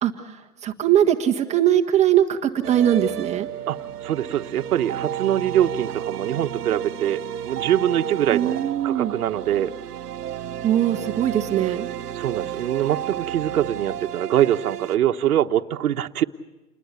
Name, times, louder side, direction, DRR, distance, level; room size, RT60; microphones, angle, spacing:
voice 1, 0.0-3.5 8.3-9.1 10.6-11.9, right 11 dB, 15° right, 2 dB, 1.5 m, -21 dB
sound 1, 2.6-15.0, right 10 dB, 80° right, 1.2 m, -32 dB
voice 2, 3.7-8.6 8.8-9.7 12.1-16.2, right 11 dB, 65° right, 4 dB, 1.4 m, -23 dB
29.5 x 21.0 x 8.3 m, 1.1 s
hypercardioid pair, 145°, 46 cm